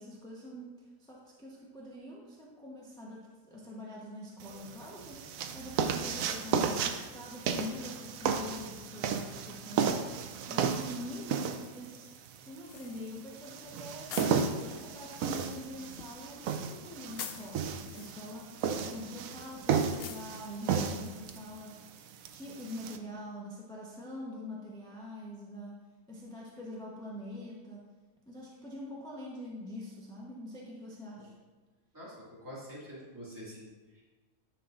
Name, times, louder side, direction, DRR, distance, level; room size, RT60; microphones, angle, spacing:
voice 1, 0.0-10.2 10.5-12.1 12.4-14.1 14.7-21.9 22.3-25.8 26.1-27.8 28.3-31.3, left 1 dB, 5° left, -4 dB, 0.8 m, -44 dB
sound 1, 4.4-23.0, right 6 dB, 75° right, 1.0 m, -34 dB
sound 2, 12.7-21.3, left 7 dB, 65° left, 0.6 m, -49 dB
voice 2, 31.9-34.0, equal, 15° right, -8 dB, 2.0 m, -47 dB
10.0 x 5.8 x 2.5 m, 1.3 s
omnidirectional pair, 1.5 m